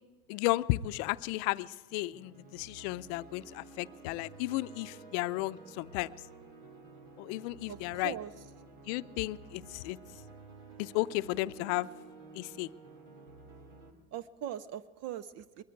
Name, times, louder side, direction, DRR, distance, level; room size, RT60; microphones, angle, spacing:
voice 1, 0.3-6.1 7.2-8.1 8.9-10.0 10.8-11.9 12.3-12.7, left 18 dB, 70° left, 15 dB, 0.6 m, -34 dB
sound 1, 1.9-13.9, right 3 dB, 85° right, 2.6 m, -52 dB
voice 2, 7.7-8.3 14.1-15.6, right 10 dB, 45° right, 16 dB, 0.5 m, -41 dB
21.0 x 13.5 x 4.5 m, 1.4 s
supercardioid pair, 125°, 36 cm